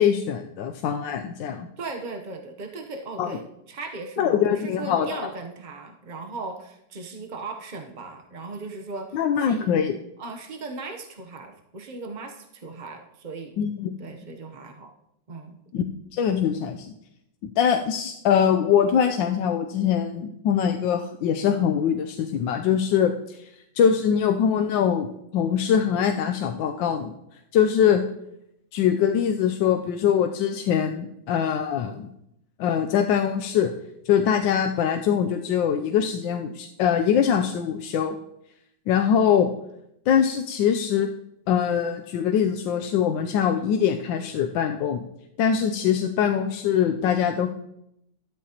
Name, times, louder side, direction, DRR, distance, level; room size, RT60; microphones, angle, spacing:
voice 1, 0.0-1.7 3.2-3.3 4.2-5.3 9.1-10.0 13.6-13.9 15.7-15.8 16.1-16.9 17.4-23.5 23.8-25.1 25.3-27.1 27.5-28.0 28.7-32.1 32.6-33.7 34.1-38.2 38.9-39.5 40.1-41.1 41.5-45.0 45.4-47.5, left 8 dB, 70° left, 5 dB, 1.3 m, -23 dB
voice 2, 1.8-9.7 10.2-13.6 14.0-14.9 15.3-15.6, right 3 dB, 70° right, 3 dB, 0.4 m, -37 dB
13.0 x 12.0 x 2.9 m, 0.81 s
omnidirectional pair, 2.2 m